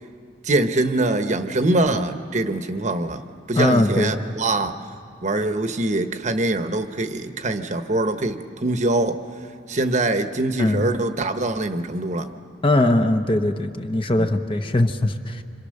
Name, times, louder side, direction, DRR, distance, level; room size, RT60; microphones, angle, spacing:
voice 1, 0.4-3.2 3.5-4.8 5.2-9.2 9.7-12.3 14.2-14.3, right 2 dB, 40° right, 8 dB, 1.1 m, -23 dB
voice 2, 3.6-4.1 10.6-10.9 12.6-15.4, left 1 dB, 30° left, 7 dB, 1.0 m, -20 dB
28.0 x 26.0 x 6.6 m, 2.3 s
head